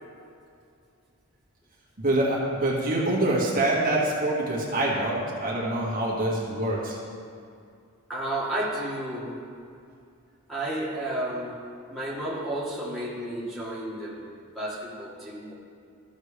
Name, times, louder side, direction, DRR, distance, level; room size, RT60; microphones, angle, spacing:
voice 1, 2.0-7.0, right 1 dB, 40° right, -6 dB, 1.6 m, -25 dB
voice 2, 8.1-9.4 10.5-14.2 14.5-15.5, right 1 dB, ahead, -8 dB, 1.8 m, -32 dB
14.5 x 6.6 x 3.3 m, 2.4 s
head